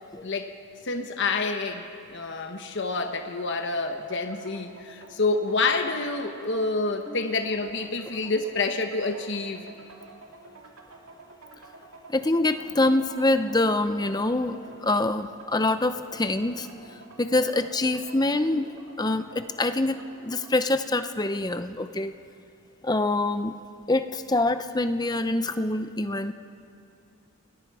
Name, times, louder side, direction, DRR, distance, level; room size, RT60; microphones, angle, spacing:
voice 1, 0.8-9.6, left 3 dB, 55° left, 6 dB, 1.1 m, -28 dB
sound 1, 2.8-20.5, right 3 dB, 80° right, 2.5 m, -49 dB
voice 2, 12.1-16.7 17.2-18.7 19.0-22.1 22.8-23.6 23.9-26.3, left 2 dB, 20° left, 10 dB, 0.7 m, -25 dB
28.5 x 21.0 x 4.8 m, 2.5 s
head